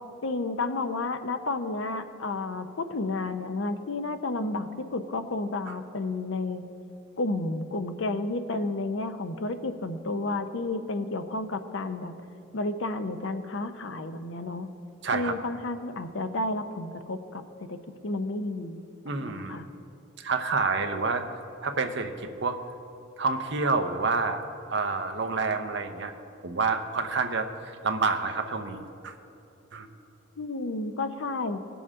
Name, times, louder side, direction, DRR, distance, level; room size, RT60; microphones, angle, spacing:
voice 1, 0.2-6.7 7.2-12.1 12.5-14.7 15.1-17.8 18.0-18.8 19.2-19.7 30.4-31.6, left 2 dB, 65° left, 9 dB, 0.6 m, -31 dB
voice 2, 15.0-15.4 19.0-19.6 20.2-21.2 21.6-22.1 22.4-22.6 23.2-24.4 24.7-26.1 26.4-29.2 29.7-29.9, right 4 dB, 55° right, 6 dB, 0.7 m, -28 dB
18.5 x 7.0 x 3.6 m, 2.8 s
head